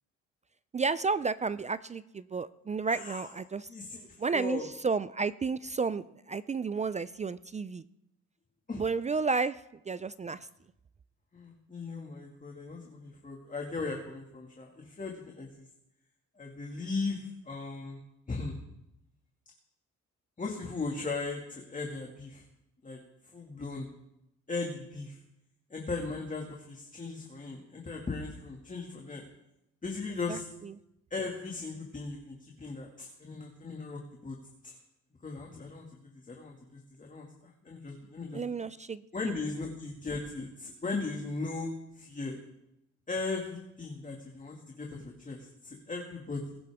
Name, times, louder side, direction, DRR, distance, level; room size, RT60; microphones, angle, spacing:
voice 1, 0.7-3.7 4.2-7.8 8.7-10.5 30.3-30.7 38.3-39.0, right 4 dB, 25° right, 16 dB, 0.4 m, -32 dB
voice 2, 2.9-3.3 3.7-4.7 8.7-8.8 11.3-15.6 16.4-18.0 18.3-18.6 20.4-22.4 22.8-23.0 23.3-23.9 24.5-25.2 25.7-29.3 29.8-30.5 31.1-34.4 34.6-34.8 35.2-38.4 39.1-42.4 43.1-46.6, left 3 dB, 25° left, 0 dB, 2.2 m, -38 dB
21.5 x 10.0 x 3.6 m, 0.87 s
cardioid pair, 90°, 30 cm